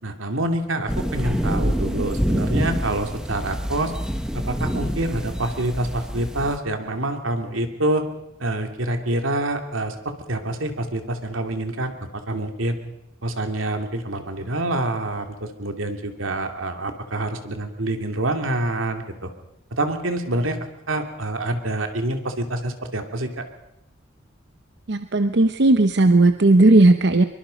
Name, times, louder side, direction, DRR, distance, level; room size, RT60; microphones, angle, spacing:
voice 1, 0.0-3.9 4.3-8.0 8.4-12.8 13.2-19.3 19.7-20.6 20.9-23.3, right 1 dB, 80° right, 6 dB, 2.6 m, -26 dB
sound 1, 0.9-6.6, equal, 5° right, 1.4 m, -26 dB
voice 2, 24.9-27.2, right 2 dB, 55° right, 9 dB, 0.8 m, -15 dB
24.5 x 23.0 x 5.2 m, 0.85 s
head